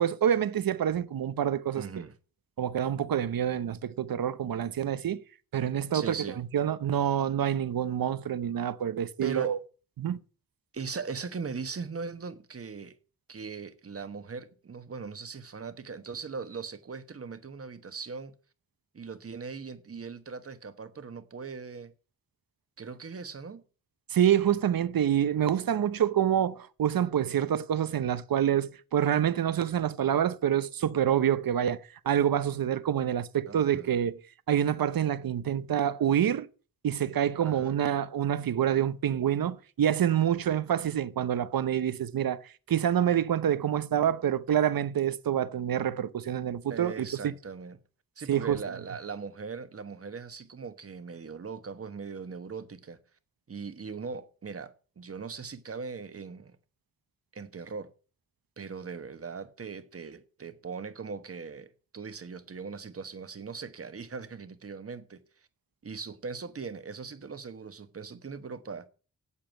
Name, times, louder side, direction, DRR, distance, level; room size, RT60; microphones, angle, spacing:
voice 1, 0.0-1.8 2.6-5.2 5.5-9.6 10.0-10.2 24.1-31.8 32.0-34.2 34.5-36.5 36.8-42.4 42.7-47.3 48.3-48.6, right 9 dB, 75° right, 0.8 m, -27 dB
voice 2, 1.8-2.1 5.9-6.4 9.2-9.6 10.7-13.0 13.3-18.3 18.9-21.9 22.8-23.6 33.5-34.0 37.4-37.8 40.3-40.4 46.7-47.8 48.2-53.0 53.5-56.6 57.3-57.9 58.6-65.2 65.8-68.9, right 5 dB, 40° right, 1.1 m, -39 dB
9.0 x 8.5 x 9.0 m
wide cardioid pair, 165°, 35 cm